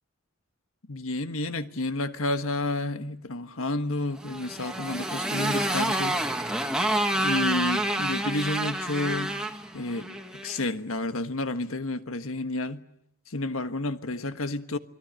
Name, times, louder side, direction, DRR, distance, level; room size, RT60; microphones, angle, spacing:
voice 1, 0.9-6.2 7.2-9.4 9.7-10.1 10.4-12.8 13.3-14.8, left 2 dB, 75° left, 1.4 m, -30 dB
Motorcycle, 4.2-10.6, right 1 dB, 5° right, 1.7 m, -28 dB
28.0 x 22.0 x 8.9 m
head